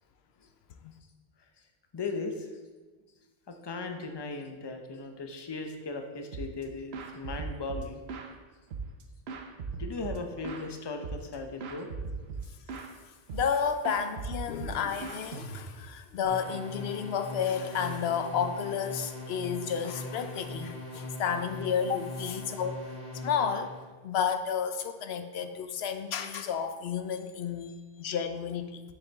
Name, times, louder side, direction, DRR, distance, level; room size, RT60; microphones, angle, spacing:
voice 1, 1.9-2.5 3.5-8.0 9.7-11.9 27.6-27.7, left 3 dB, 30° left, 4 dB, 0.6 m, -37 dB
sound 1, 6.3-6.6 6.9-8.3 8.7-10.7 11.0-11.4 11.6-12.9 13.3-13.6 13.8-15.9, right 4 dB, 90° right, 1.0 m, -39 dB
voice 2, 13.3-22.8 23.2-23.8 24.0-28.8, left 7 dB, 85° left, 8 dB, 0.9 m, -31 dB
sound 2, 16.2-23.8, left 1 dB, 40° right, 2.4 m, -41 dB
7.2 x 7.0 x 3.5 m, 1.3 s
omnidirectional pair, 1.0 m